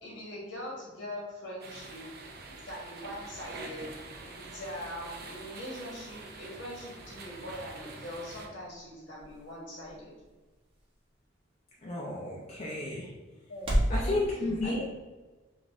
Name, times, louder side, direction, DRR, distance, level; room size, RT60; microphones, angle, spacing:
voice 1, 0.0-2.1 2.5-3.9 4.2-10.1 13.5-14.8, left 1 dB, 70° left, -4 dB, 1.4 m, -42 dB
sound 1, 1.6-8.5, right 3 dB, 50° right, 0.5 m, -46 dB
sound 2, 7.8-14.0, equal, 30° right, 0.9 m, -36 dB
voice 2, 11.8-13.1 13.9-14.8, left 2 dB, 35° left, -4 dB, 0.5 m, -32 dB
3.9 x 2.5 x 3.7 m, 1.2 s
head